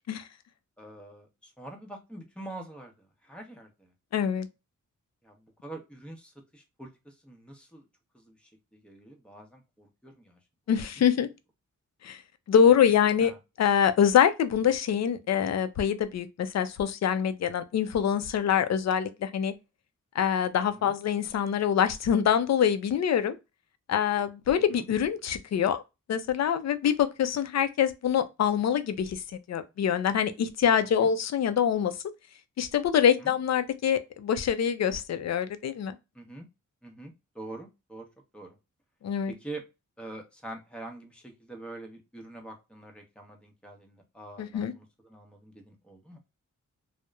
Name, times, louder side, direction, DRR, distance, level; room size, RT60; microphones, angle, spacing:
voice 1, 0.8-3.9 5.2-7.9 8.1-10.4 10.7-10.8 12.6-12.7 13.2-13.4 20.8-21.0 24.7-24.9 31.0-31.1 33.0-33.3 36.1-36.4 36.8-38.1 38.3-38.6 39.3-39.6 40.0-46.2, right 2 dB, 5° left, 0.7 m, -45 dB
voice 2, 4.1-4.5 10.7-11.3 12.0-12.2 12.5-13.3 13.6-19.5 20.2-23.4 23.9-25.8 26.1-29.2 29.5-31.9 32.6-35.9 39.0-39.3 44.4-44.7, left 8 dB, 55° left, 0.4 m, -25 dB
2.9 x 2.0 x 2.2 m
wide cardioid pair, 85°, 31 cm